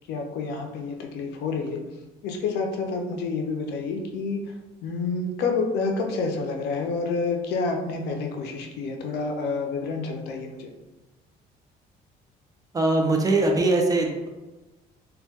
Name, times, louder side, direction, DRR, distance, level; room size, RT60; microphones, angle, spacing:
voice 1, 0.1-1.8 2.2-4.4 4.8-10.7, left 4 dB, 80° left, 3 dB, 0.4 m, -28 dB
voice 2, 12.7-14.3, right 2 dB, 20° right, 1 dB, 0.4 m, -21 dB
2.1 x 2.1 x 2.7 m, 1.1 s
cardioid pair, 110°, 17 cm